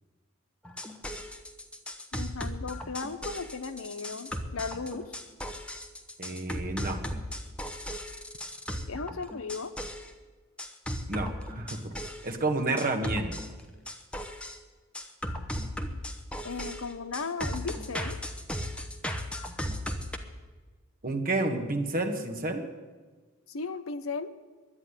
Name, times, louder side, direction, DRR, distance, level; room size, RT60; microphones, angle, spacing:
sound 1, 0.6-10.1 10.6-12.3 12.8-14.6 14.9-20.2, equal, 5° left, 1.0 m, -36 dB
voice 1, 2.1-5.1 8.9-9.7 16.4-18.2 23.5-24.3, left 4 dB, 80° left, 8 dB, 1.0 m, -36 dB
voice 2, 6.2-7.0 11.1-12.0 12.2-13.3 21.0-22.7, right 2 dB, 45° right, 4 dB, 1.6 m, -30 dB
11.5 x 9.8 x 9.7 m, 1.4 s
head